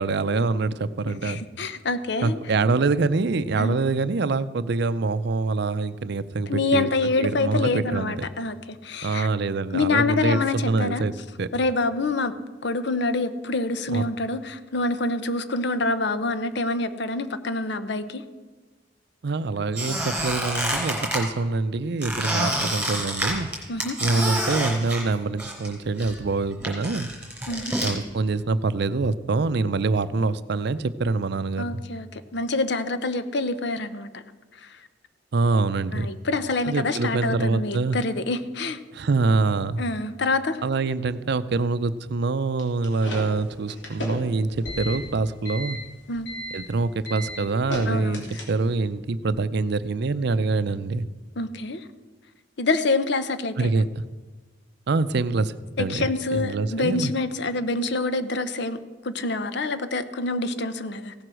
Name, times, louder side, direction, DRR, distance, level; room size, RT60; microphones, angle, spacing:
voice 1, 0.0-1.4 2.2-6.9 7.2-8.2 9.0-11.1 11.4-11.5 13.9-14.0 19.2-23.5 24.0-27.1 27.8-31.8 35.3-36.1 36.7-38.0 38.9-39.8 40.6-45.8 46.5-51.1 53.6-53.9 54.9-57.1, right 3 dB, 65° right, 15 dB, 0.5 m, -25 dB
voice 2, 1.1-2.4 3.6-3.8 6.5-9.3 9.7-11.0 11.5-12.3 12.6-18.2 23.7-24.0 27.5-27.8 31.6-34.2 34.5-34.8 35.9-38.8 39.8-40.6 46.1-46.3 47.9-48.4 51.4-51.9 52.6-53.7 55.8-61.1, left 3 dB, 65° left, 12 dB, 0.8 m, -26 dB
Squeak, 19.7-21.2 22.0-25.7 26.0-27.9, right 1 dB, 5° right, 3.5 m, -28 dB
sound 1, 42.6-48.9, left 1 dB, 85° left, 3.1 m, -35 dB
16.5 x 7.7 x 6.3 m, 1.3 s
head